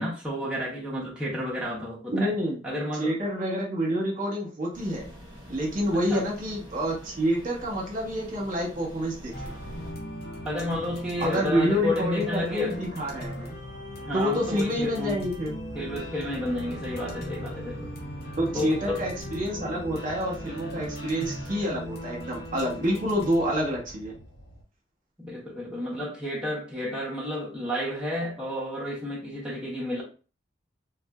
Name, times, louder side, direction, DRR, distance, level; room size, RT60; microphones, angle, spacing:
voice 1, 0.0-2.3 2.6-3.2 6.1-6.3 10.4-12.8 14.0-15.2 15.7-17.9 18.5-19.0 25.2-30.0, left 1 dB, 5° right, 0.8 m, -31 dB
voice 2, 2.1-2.6 3.0-5.1 5.5-9.3 11.2-13.6 14.1-15.5 18.4-24.2, equal, 45° right, 1.0 m, -28 dB
sound 1, 4.7-9.9, equal, 25° right, 1.2 m, -45 dB
sound 2, 9.3-24.6, equal, 55° left, 0.8 m, -39 dB
3.3 x 2.6 x 2.3 m
head